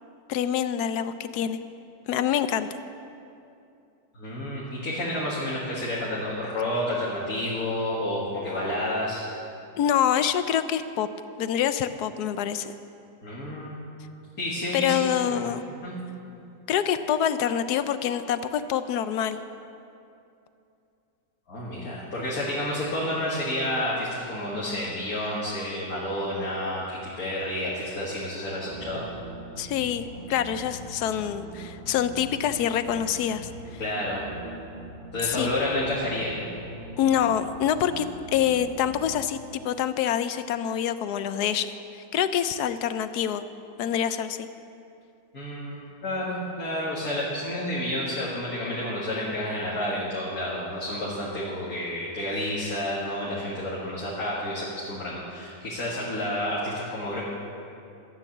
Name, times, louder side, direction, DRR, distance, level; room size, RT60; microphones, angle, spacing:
voice 1, 0.3-1.6 2.1-2.7 9.8-11.1 11.4-12.7 14.7-15.6 16.7-19.4 29.6-33.5 35.3-35.5 37.0-38.1 38.3-41.7 42.1-43.4 43.8-44.5, left 9 dB, 70° left, 11 dB, 1.1 m, -26 dB
voice 2, 4.1-9.3 13.2-13.8 14.4-15.5 15.8-15.9 21.5-29.0 33.8-34.3 35.1-36.4 45.3-57.2, left 1 dB, 55° left, -7 dB, 2.4 m, -30 dB
sound 1, 28.7-39.2, right 2 dB, 45° right, 0.9 m, -42 dB
13.0 x 10.0 x 7.2 m, 2.6 s
omnidirectional pair, 1.9 m